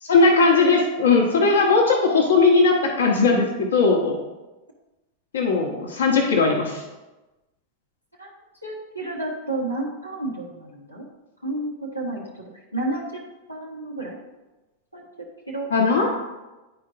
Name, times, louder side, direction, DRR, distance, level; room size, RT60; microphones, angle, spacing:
voice 1, 0.0-4.1 5.3-6.8 15.7-16.1, left 4 dB, 65° left, 0 dB, 1.1 m, -18 dB
voice 2, 8.6-11.1 11.4-13.2 13.5-14.2 14.9-15.1 15.5-15.7, right 2 dB, 90° left, -3 dB, 1.1 m, -31 dB
10.5 x 4.6 x 2.6 m, 1.1 s
figure-of-eight pair, 90°, 0 cm